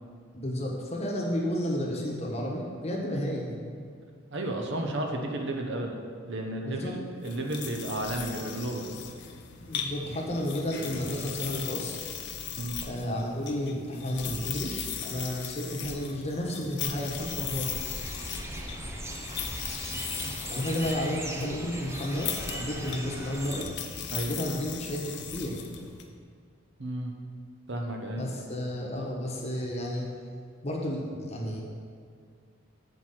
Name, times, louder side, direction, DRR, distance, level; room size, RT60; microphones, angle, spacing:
voice 1, 0.4-3.6 6.6-6.9 9.7-12.0 12.9-17.7 20.5-23.6 24.3-25.5 28.2-30.1 30.6-31.6, equal, 30° left, -2 dB, 1.1 m, -32 dB
voice 2, 4.3-6.0 6.2-8.9 12.6-12.8 19.6-20.3 24.1-24.3 26.8-27.1 27.7-28.3, right 1 dB, 55° right, 2 dB, 0.8 m, -33 dB
sound 1, 7.2-26.1, left 7 dB, 55° left, 0.6 m, -38 dB
sound 2, 17.1-23.6, right 1 dB, 15° right, 0.6 m, -39 dB
8.1 x 4.5 x 5.7 m, 2.2 s
head